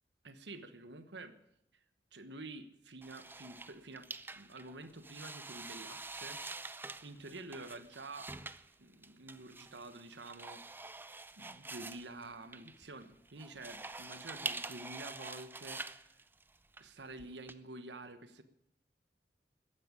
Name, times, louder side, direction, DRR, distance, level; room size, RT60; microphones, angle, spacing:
voice 1, 0.2-1.3 2.1-4.1 4.3-6.4 7.0-8.3 8.8-10.8 11.4-16.2 16.8-18.4, right 2 dB, 80° right, 10 dB, 1.2 m, -49 dB
sound 1, 3.0-17.5, right 3 dB, 10° right, 0.6 m, -46 dB
14.5 x 10.0 x 9.7 m, 0.76 s
head